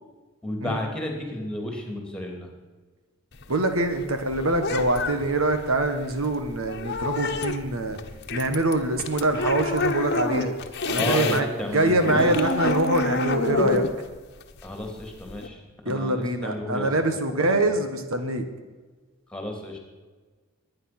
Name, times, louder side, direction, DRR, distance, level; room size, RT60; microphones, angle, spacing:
voice 1, 0.4-2.5 10.9-12.5 14.6-15.6 15.8-16.9 17.4-17.6 19.3-19.8, left 1 dB, 5° left, 2 dB, 3.0 m, -32 dB
sound 1, 3.3-11.4 11.7-15.5, left 3 dB, 50° left, 1.2 m, -28 dB
voice 2, 3.5-8.0 8.3-10.5 10.8-11.5 11.7-13.9 15.8-18.4, right 2 dB, 75° right, 7 dB, 1.7 m, -24 dB
22.0 x 9.7 x 6.2 m, 1.4 s
head